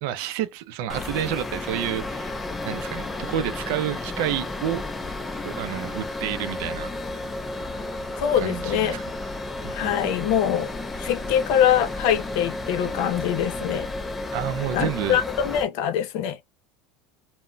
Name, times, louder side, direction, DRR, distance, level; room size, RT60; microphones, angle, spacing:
voice 1, 0.0-2.3 2.6-4.8 5.4-6.9 8.4-9.1 9.6-9.9 14.3-15.2, right 11 dB, 65° right, 0.4 m, -29 dB
sound 1, 0.9-15.6, left 2 dB, 10° left, 0.4 m, -32 dB
voice 2, 8.2-9.0 9.7-10.7 11.0-13.9 14.7-16.4, left 9 dB, 65° left, 0.6 m, -23 dB
2.2 x 2.1 x 3.8 m
supercardioid pair, 145°, 0 cm